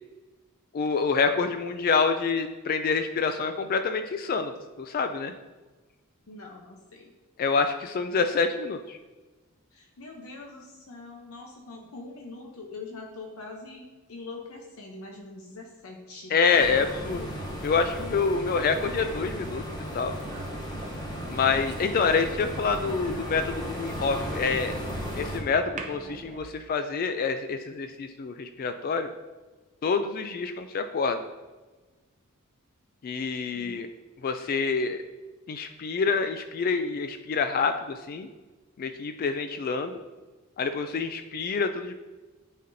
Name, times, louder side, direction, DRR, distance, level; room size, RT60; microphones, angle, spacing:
voice 1, 0.7-4.5 4.8-5.3 7.4-9.0 16.3-17.3 17.6-19.6 19.9-20.1 21.3-24.7 25.1-29.1 29.8-31.2 33.0-33.9 34.2-35.0 35.5-38.3 38.8-40.0 40.6-41.9, left 5 dB, 40° left, 8 dB, 0.3 m, -27 dB
voice 2, 6.3-7.1 9.7-16.3, left 3 dB, 75° left, 0 dB, 0.8 m, -43 dB
sound 1, 16.5-25.4, equal, 20° left, 0.9 m, -35 dB
sound 2, 20.2-26.5, right 1 dB, 35° right, 0.6 m, -43 dB
9.3 x 4.2 x 2.7 m, 1.2 s
head